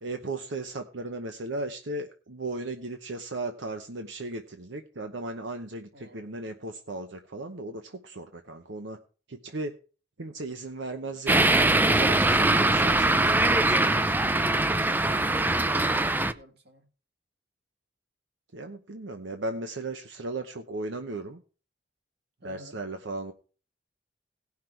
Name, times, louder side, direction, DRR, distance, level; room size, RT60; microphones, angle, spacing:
voice 1, 0.0-9.0 9.3-9.7 10.2-14.0 18.5-21.4 22.4-23.3, right 2 dB, 85° right, 0.9 m, -36 dB
voice 2, 5.9-6.3 15.1-16.9 22.4-22.8, equal, 60° right, 1.9 m, -50 dB
sound 1, 11.3-16.3, right 2 dB, 10° right, 0.4 m, -22 dB
17.5 x 5.9 x 4.5 m
head